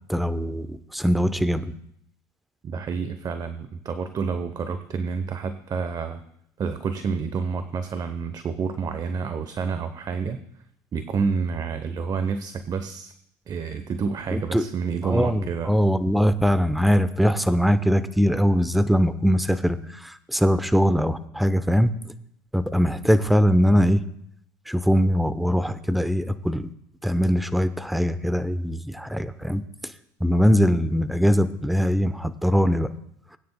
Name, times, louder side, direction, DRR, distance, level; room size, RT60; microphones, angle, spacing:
voice 1, 0.1-1.7 14.3-14.6 15.0-19.8 20.3-21.9 22.5-24.0 24.7-26.7 27.0-29.6 30.2-32.9, equal, ahead, 12 dB, 0.8 m, -21 dB
voice 2, 2.6-6.2 6.6-10.4 10.9-13.1 13.5-15.7, right 5 dB, 40° right, 10 dB, 0.9 m, -29 dB
20.5 x 9.4 x 2.2 m, 0.72 s
hypercardioid pair, 75°, 11 cm